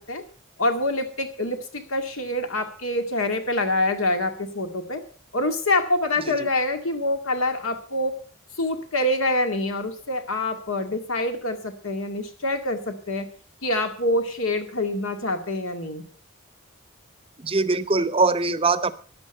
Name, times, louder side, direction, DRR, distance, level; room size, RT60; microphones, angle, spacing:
voice 1, 0.6-5.0 5.3-8.2 8.6-13.3 13.6-16.0, left 1 dB, 75° left, 6 dB, 2.1 m, -26 dB
voice 2, 17.4-18.9, right 3 dB, 25° right, 14 dB, 0.7 m, -22 dB
13.0 x 10.5 x 5.5 m, 0.41 s
head